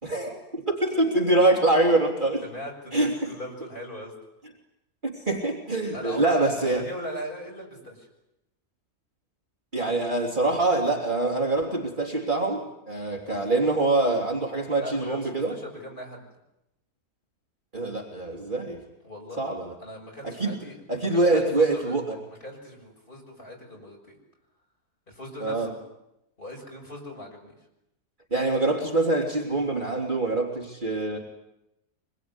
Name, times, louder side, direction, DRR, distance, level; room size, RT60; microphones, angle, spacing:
voice 1, 0.0-2.4 2.9-3.3 5.0-6.9 9.7-15.5 17.7-18.8 19.4-19.7 20.2-20.6 20.9-22.2 25.4-25.7 28.3-31.2, right 2 dB, 30° right, -1 dB, 3.5 m, -24 dB
voice 2, 2.4-4.1 5.9-8.1 14.8-16.2 19.0-19.4 19.8-20.8 21.1-22.0 22.4-24.2 25.1-25.8 26.4-27.5 31.1-31.2, equal, 30° left, -1 dB, 7.3 m, -39 dB
25.5 x 22.0 x 9.8 m, 0.87 s
omnidirectional pair, 1.7 m